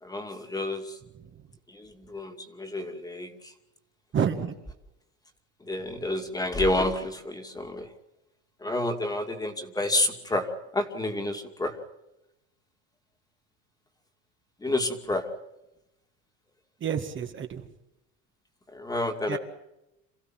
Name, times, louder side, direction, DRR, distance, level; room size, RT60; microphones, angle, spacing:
voice 1, 0.0-1.0 1.7-3.5 5.6-7.9 8.6-11.8 14.6-15.3 18.7-19.4, left 1 dB, 10° left, 5 dB, 2.5 m, -29 dB
voice 2, 4.1-4.6 16.8-17.7 19.3-19.4, right 7 dB, 35° right, 4 dB, 1.9 m, -28 dB
27.5 x 15.5 x 7.6 m, 0.92 s
cardioid pair, 130°, 35 cm